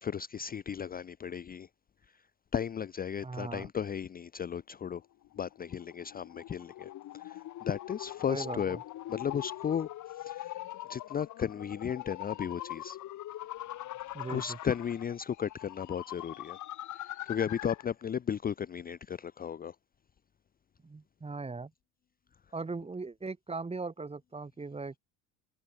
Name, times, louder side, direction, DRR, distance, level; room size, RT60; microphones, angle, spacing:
voice 1, 0.0-1.7 2.1-2.2 2.5-5.0 5.4-8.8 9.1-10.6 10.9-13.0 14.3-16.6 16.9-19.8, left 8 dB, 25° left, 0.7 m, -35 dB
voice 2, 3.2-3.7 8.3-8.8 14.1-14.6 20.8-21.7 22.5-25.0, right 3 dB, 15° right, 2.3 m, -39 dB
sound 1, 5.2-17.9, left 14 dB, 50° left, 2.3 m, -42 dB
hypercardioid pair, 80°, 38 cm